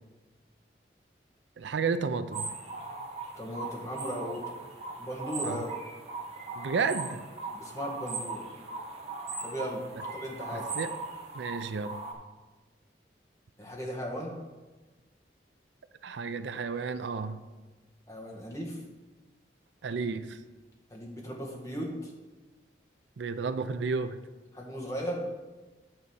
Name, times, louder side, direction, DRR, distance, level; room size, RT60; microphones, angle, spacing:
voice 1, 1.6-2.5 5.4-5.6 6.6-7.2 10.5-10.9 11.3-12.0 16.0-17.4 19.8-20.4 23.2-24.2, right 5 dB, 85° right, 12 dB, 0.5 m, -32 dB
sound 1, 2.3-12.1, right 3 dB, 35° right, 1.3 m, -39 dB
voice 2, 3.4-4.6 5.0-5.7 7.5-8.5 9.4-9.8 10.1-10.6 13.6-14.3 18.1-18.8 20.9-22.1 24.5-25.2, equal, 15° left, -1 dB, 1.6 m, -37 dB
8.8 x 4.1 x 7.0 m, 1.2 s
head